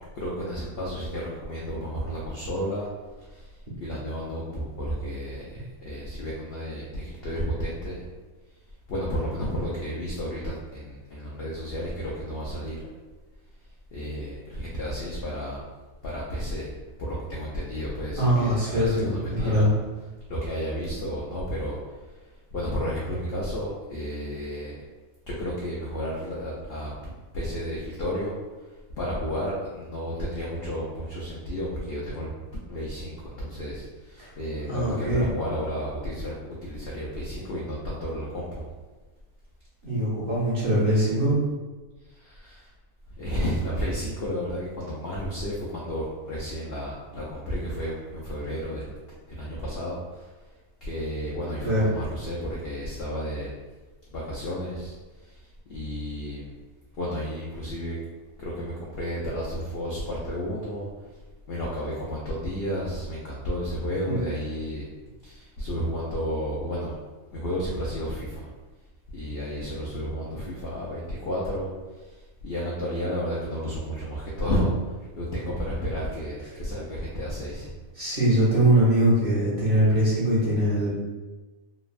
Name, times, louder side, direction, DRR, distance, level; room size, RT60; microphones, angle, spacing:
voice 1, 0.1-2.9 3.2-8.1 8.9-12.8 13.9-15.7 16.0-19.7 20.3-24.7 25.3-36.3 36.6-38.7 42.0-42.7 43.2-48.9 49.3-50.5 50.8-53.6 54.1-56.5 56.9-58.0 58.4-61.2 61.5-64.9 65.2-67.0 67.3-68.5 69.1-77.7, equal, 70° left, -5 dB, 0.5 m, -32 dB
voice 2, 18.2-19.7 34.2-34.3 34.7-35.3 39.8-41.4 51.6-51.9 64.1-64.2 78.0-81.0, right 1 dB, 50° right, -8 dB, 0.8 m, -22 dB
3.1 x 2.1 x 2.4 m, 1.2 s
omnidirectional pair, 1.5 m